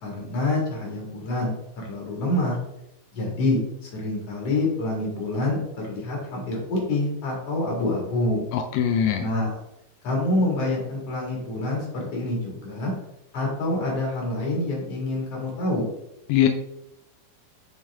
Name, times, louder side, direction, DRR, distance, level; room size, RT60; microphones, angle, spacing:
voice 1, 0.0-2.6 3.1-5.6 5.9-8.5 9.2-9.6 10.0-12.9 13.3-15.9, left 2 dB, 45° left, -2 dB, 2.9 m, -26 dB
voice 2, 8.5-9.3 16.3-16.5, left 10 dB, 85° left, 5 dB, 1.8 m, -21 dB
7.3 x 4.3 x 3.6 m, 0.80 s
omnidirectional pair, 4.1 m